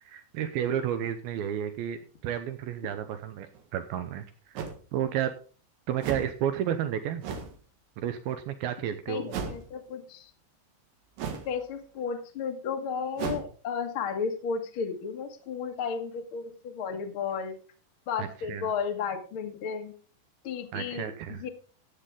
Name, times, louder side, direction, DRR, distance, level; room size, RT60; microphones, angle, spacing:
voice 1, 0.0-5.3 5.9-7.2 8.0-9.3 18.2-18.7 20.7-21.5, right 10 dB, 85° right, 9 dB, 2.2 m, -32 dB
sound 1, 3.6-3.7 4.6-4.8 6.0-6.4 7.2-7.6 9.3-9.7 11.2-11.6 13.2-13.5, right 6 dB, 60° right, 2.9 m, -35 dB
voice 2, 9.1-10.3 11.4-17.5 18.1-19.9 20.4-21.5, left 6 dB, 85° left, 4 dB, 1.1 m, -33 dB
14.0 x 9.1 x 3.6 m, 0.39 s
omnidirectional pair, 5.2 m